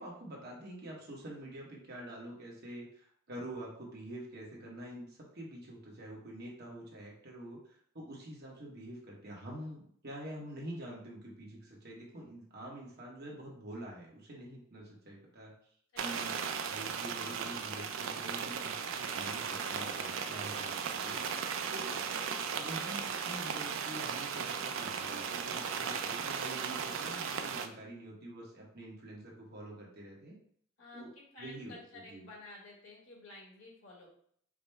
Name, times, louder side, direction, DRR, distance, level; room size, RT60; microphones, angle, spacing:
voice 1, 0.0-7.6 7.9-15.5 16.0-16.3 16.7-22.0 22.5-30.4 30.9-31.1 31.4-32.3, right 1 dB, 55° right, -3 dB, 1.2 m, -46 dB
voice 2, 15.9-16.5 30.8-34.1, left 2 dB, 75° left, -3 dB, 1.4 m, -53 dB
sound 1, 16.0-27.7, right 6 dB, 70° right, 0.4 m, -36 dB
4.9 x 2.1 x 3.3 m, 0.62 s
head